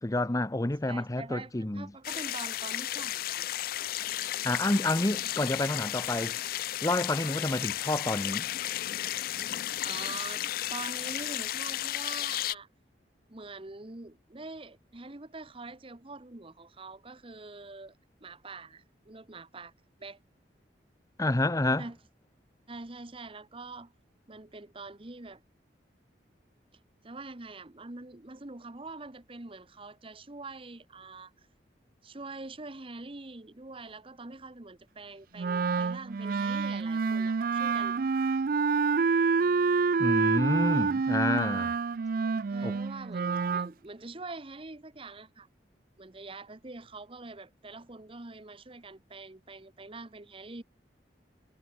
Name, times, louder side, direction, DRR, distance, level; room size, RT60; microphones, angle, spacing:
voice 1, 0.0-1.9 4.4-6.4 6.8-8.5 21.2-21.8 40.0-41.7 42.6-42.7, left 2 dB, 20° left, 0.8 m, -29 dB
voice 2, 0.8-3.7 9.3-9.4 9.8-10.4 10.7-12.7 13.3-17.9 18.2-19.7 20.0-20.2 21.8-22.0 22.7-23.9 24.3-25.4 27.0-31.3 32.0-38.0 42.5-45.5 46.0-50.6, right 3 dB, 30° right, 1.2 m, -44 dB
sound 1, 2.0-12.5, left 13 dB, 55° left, 0.3 m, -34 dB
Wind instrument woodwind instrument, 35.4-43.7, right 5 dB, 50° right, 0.4 m, -27 dB
head